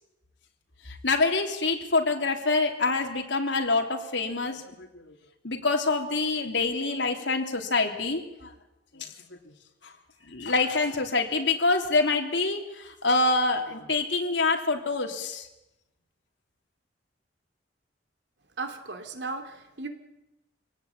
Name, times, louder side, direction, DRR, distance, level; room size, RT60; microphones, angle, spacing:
voice 1, 0.8-5.1 5.4-8.5 8.9-9.1 9.8-9.9 10.2-15.5, left 3 dB, 80° left, 3 dB, 3.3 m, -26 dB
voice 2, 18.6-19.9, right 3 dB, 70° right, 6 dB, 2.9 m, -36 dB
25.0 x 18.0 x 8.9 m, 0.94 s
head